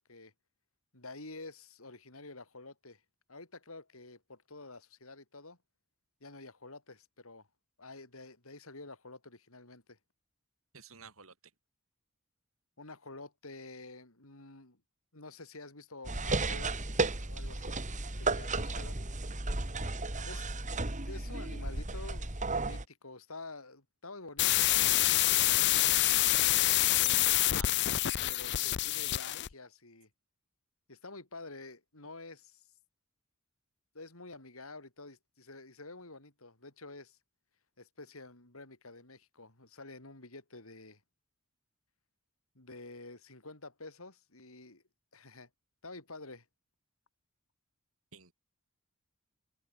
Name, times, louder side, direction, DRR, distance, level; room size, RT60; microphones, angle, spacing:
voice 1, 0.9-3.0 3.3-5.6 6.2-7.5 7.8-10.0 12.8-14.8 15.1-16.8 17.1-17.8 18.2-19.0 20.3-20.5 21.1-26.0 27.0-27.3 28.3-30.1 30.9-32.7 33.9-37.2 37.8-41.0 42.6-44.8 45.1-45.5 45.8-46.5, left 3 dB, 80° left, 5.3 m, -49 dB
voice 2, 10.7-11.4 20.1-20.4 27.2-27.7 48.1-48.3, right 5 dB, 75° right, 7.4 m, -51 dB
sound 1, 16.0-22.8, right 3 dB, 35° right, 2.7 m, -34 dB
sound 2, 24.4-29.5, left 15 dB, 55° left, 0.5 m, -27 dB
head